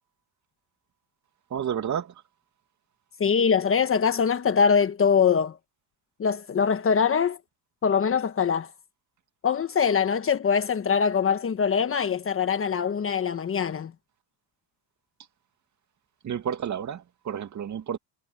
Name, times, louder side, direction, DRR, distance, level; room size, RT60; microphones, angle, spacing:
voice 1, 1.5-2.1 16.2-18.0, right 8 dB, 40° right, 2.4 m, -31 dB
voice 2, 3.2-5.6 6.2-7.4 7.8-8.7 9.4-13.9, left 6 dB, 30° left, 1.3 m, -23 dB
cardioid pair, 120°, 44 cm